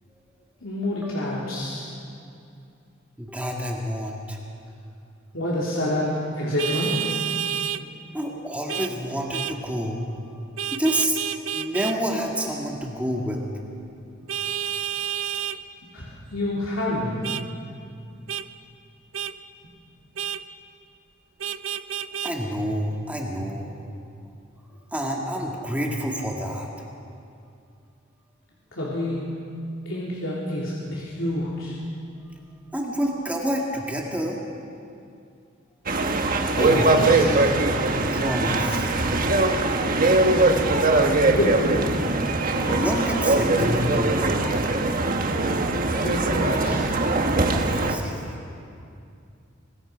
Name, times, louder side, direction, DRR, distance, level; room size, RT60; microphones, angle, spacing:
voice 1, 0.6-1.9 5.3-7.1 15.9-17.2 28.7-29.3 29.9-31.8 36.6-37.4 40.4-41.6 46.0-46.9, left 1 dB, 90° left, -6 dB, 3.5 m, -28 dB
voice 2, 3.2-4.4 8.1-10.0 10.3-10.5 10.7-11.2 11.5-13.4 14.4-14.6 22.2-23.8 24.9-26.7 32.7-34.4 38.1-38.9 42.7-44.4 47.5-48.4, equal, 10° right, -1 dB, 2.0 m, -28 dB
Vehicle horn car horn honking, 6.6-7.8 8.7-8.9 9.3-9.6 10.6-12.0 14.3-15.6 17.2-17.4 18.3-18.4 19.1-19.3 20.2-20.4 21.4-22.3, right 9 dB, 90° right, 0.7 m, -29 dB
sound 1, 35.9-48.0, right 2 dB, 45° right, 1.4 m, -21 dB
sound 2, 36.4-38.5, left 2 dB, 20° left, 0.7 m, -33 dB
25.5 x 20.5 x 5.2 m, 2.5 s
head